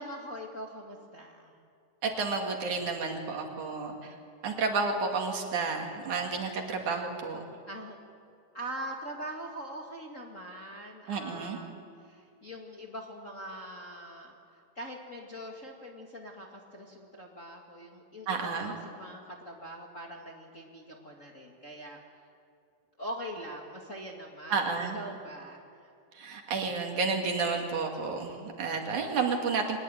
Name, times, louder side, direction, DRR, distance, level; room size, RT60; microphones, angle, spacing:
voice 1, 0.0-1.5 7.7-8.0 8.5-22.0 23.0-25.9, equal, 30° left, 0 dB, 1.9 m, -43 dB
voice 2, 2.0-4.2 4.4-7.4 11.1-11.6 18.3-18.7 24.5-25.0 26.1-29.8, right 4 dB, 65° right, 3 dB, 3.7 m, -31 dB
23.0 x 20.5 x 8.9 m, 2.5 s
omnidirectional pair, 3.8 m